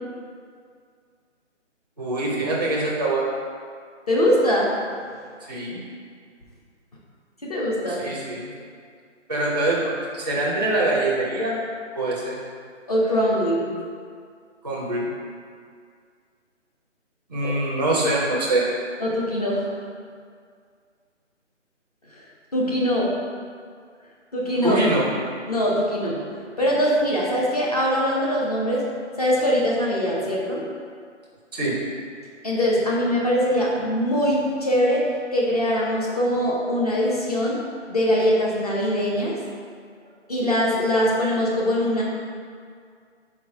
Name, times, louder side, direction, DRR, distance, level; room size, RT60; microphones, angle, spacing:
voice 1, 2.0-3.3 5.5-5.8 7.9-8.5 9.3-11.6 11.9-12.4 14.6-15.1 17.3-18.6 24.6-25.1 31.5-31.7, right 2 dB, 20° right, -5 dB, 0.5 m, -24 dB
voice 2, 4.1-4.7 7.4-8.0 12.9-13.6 19.0-19.7 22.5-23.1 24.3-24.8 25.5-26.2 26.6-28.8 29.2-30.6 32.4-35.0 35.3-37.6 37.9-39.3 40.3-42.0, equal, 30° left, -5 dB, 0.8 m, -22 dB
4.6 x 4.3 x 4.9 m, 2.1 s
hypercardioid pair, 170°, 37 cm